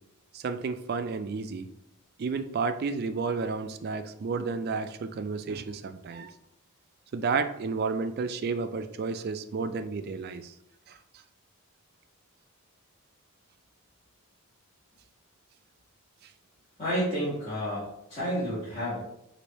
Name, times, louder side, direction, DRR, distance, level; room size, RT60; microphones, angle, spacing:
voice 1, 0.3-1.7 2.2-6.4 7.1-10.5 10.9-11.0, right 4 dB, 45° right, 10 dB, 0.3 m, -31 dB
voice 2, 16.8-19.0, equal, 30° left, -11 dB, 1.6 m, -30 dB
4.8 x 2.6 x 4.2 m, 0.85 s
head